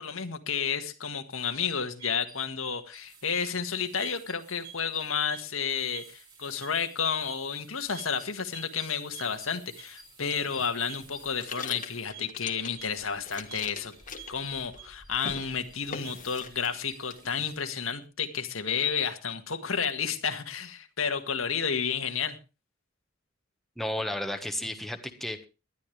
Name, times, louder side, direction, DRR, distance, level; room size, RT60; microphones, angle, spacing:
voice 1, 0.0-13.9 14.3-22.4, left 6 dB, 90° left, 6 dB, 1.8 m, -31 dB
sound 1, 1.7-17.6, right 7 dB, 25° right, 6.0 m, -50 dB
sound 2, 10.3-12.9 13.2-14.9 15.1-15.5 15.9-16.8 17.1-17.9, left 5 dB, 40° left, 1.6 m, -42 dB
voice 2, 23.8-25.5, left 1 dB, ahead, 5 dB, 1.4 m, -33 dB
19.5 x 12.0 x 3.4 m, 0.31 s
head